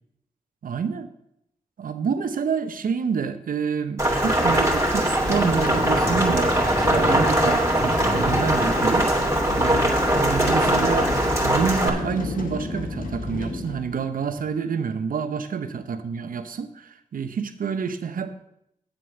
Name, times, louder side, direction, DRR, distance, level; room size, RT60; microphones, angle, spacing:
voice 1, 0.6-1.1 1.8-6.5 6.9-9.1 9.5-11.1 11.4-18.3, right 6 dB, 70° right, 10 dB, 1.0 m, -28 dB
Rain, 4.0-11.9, right 1 dB, 20° right, 2.9 m, -21 dB
sound 1, 5.0-14.5, left 2 dB, 65° left, 1.8 m, -31 dB
7.9 x 7.6 x 6.5 m, 0.78 s
supercardioid pair, 40°, 15 cm